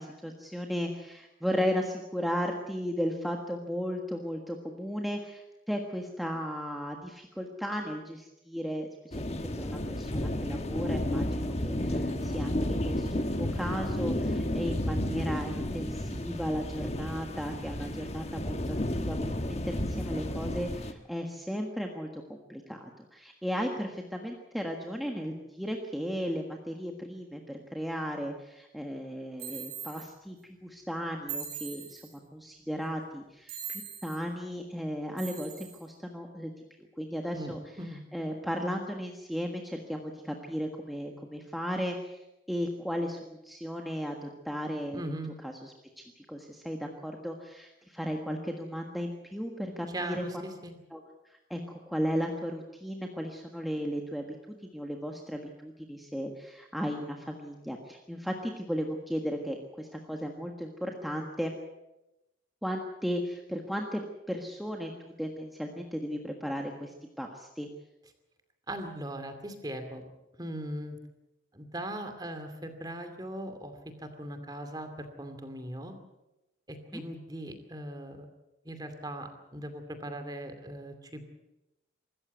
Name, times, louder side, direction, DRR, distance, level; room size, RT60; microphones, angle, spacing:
voice 1, 0.0-32.0 32.3-36.5 37.0-37.6 38.1-45.0 45.4-50.2 50.9-61.5 62.6-64.0 64.3-67.7 76.9-77.0, equal, ahead, 1 dB, 1.5 m, -35 dB
sound 1, 9.1-20.9, left 1 dB, 35° left, 1.4 m, -32 dB
sound 2, 29.4-30.1 31.3-32.2 33.5-34.2 35.2-35.8, right 7 dB, 55° right, 5.1 m, -40 dB
voice 2, 37.3-38.0 44.9-45.3 49.9-50.7 68.7-70.0 70.4-71.0 71.5-75.9 76.7-78.3 78.6-81.3, right 1 dB, 20° right, 7 dB, 2.5 m, -39 dB
25.0 x 14.0 x 8.2 m, 0.96 s
head